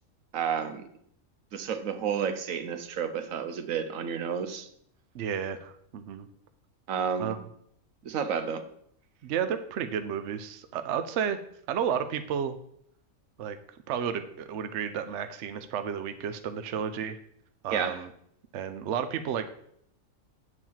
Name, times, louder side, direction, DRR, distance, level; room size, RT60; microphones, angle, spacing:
voice 1, 0.3-0.9 1.5-4.7 6.9-7.3 8.0-8.6 17.7-18.0, right 7 dB, 85° right, 1.2 m, -31 dB
voice 2, 5.1-6.3 7.2-7.4 9.2-11.4 11.7-12.6 13.4-13.6 13.9-17.2 17.6-18.1 18.5-19.5, right 8 dB, 65° right, 0.9 m, -32 dB
8.1 x 4.5 x 7.2 m
omnidirectional pair, 1.4 m